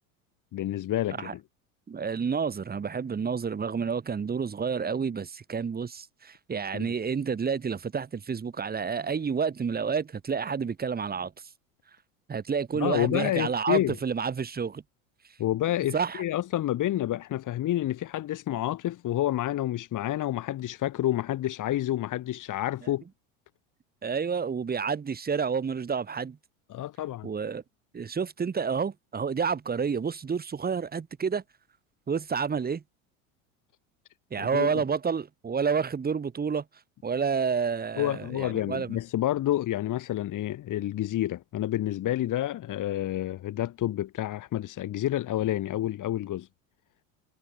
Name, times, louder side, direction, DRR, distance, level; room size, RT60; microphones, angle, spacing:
voice 1, 0.5-1.4 6.7-6.9 12.7-14.0 15.4-23.0 26.7-27.3 34.4-34.7 38.0-46.5, left 13 dB, 45° left, 4.8 m, -29 dB
voice 2, 1.9-11.3 12.3-14.8 15.9-16.2 24.0-26.4 27.2-27.6 27.9-31.4 32.1-32.8 34.3-36.6 37.0-39.0, right 6 dB, 20° right, 2.2 m, -29 dB
hypercardioid pair, 90°, 41 cm